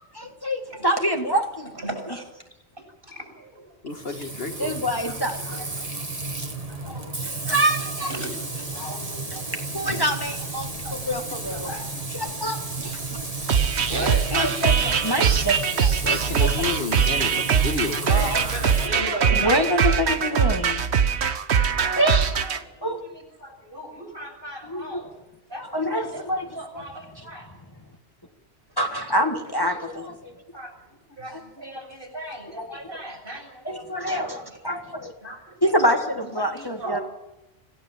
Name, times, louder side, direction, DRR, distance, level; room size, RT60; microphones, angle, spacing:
voice 1, 0.1-1.7 4.6-5.7 7.5-8.1 9.7-11.7 12.1-13.2 13.9-14.1 14.3-15.9 16.4-16.5 18.8-20.8 22.0-22.3 22.8-23.0 24.7-25.0 25.7-26.5 26.7-26.8 28.8-30.3 33.7-35.1 35.6-37.0, equal, 20° left, 3 dB, 1.8 m, -26 dB
voice 2, 1.7-2.3 2.8-3.7 4.9-6.1 6.7-10.0 10.8-11.0 11.3-11.9 13.9-14.3 14.9-15.0 18.1-20.5 21.5-25.2 25.5-27.5 28.7-28.8 30.5-34.6 35.2-37.0, right 1 dB, 60° right, 4 dB, 7.4 m, -37 dB
voice 3, 3.8-4.8 6.8-6.9 16.0-18.3, left 4 dB, 65° left, 6 dB, 2.0 m, -31 dB
Frying (food), 3.9-18.9, right 2 dB, 35° right, 2.0 m, -33 dB
sound 1, 13.5-22.6, right 7 dB, 80° right, 1.3 m, -22 dB
26.0 x 16.5 x 7.5 m, 0.96 s
omnidirectional pair, 1.1 m